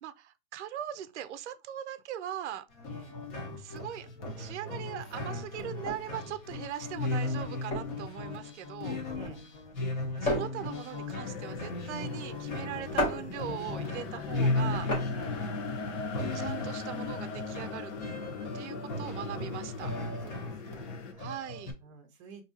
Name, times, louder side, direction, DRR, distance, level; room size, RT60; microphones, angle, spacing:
voice 1, 0.0-2.7 3.6-4.1 4.4-9.0 10.2-14.9 16.3-17.9 18.5-19.9 21.2-21.7, right 11 dB, 60° right, 0.5 m, -40 dB
sound 1, 2.7-21.7, left 2 dB, 35° left, 1.1 m, -36 dB
voice 2, 2.9-3.2 9.1-9.5 15.1-15.4 20.2-21.0 21.8-22.5, right 5 dB, 25° right, 0.7 m, -50 dB
sound 2, 4.2-16.4, equal, 15° left, 0.6 m, -37 dB
sound 3, 11.2-21.1, left 4 dB, 70° left, 0.8 m, -40 dB
4.4 x 2.8 x 2.7 m
hypercardioid pair, 160°, 39 cm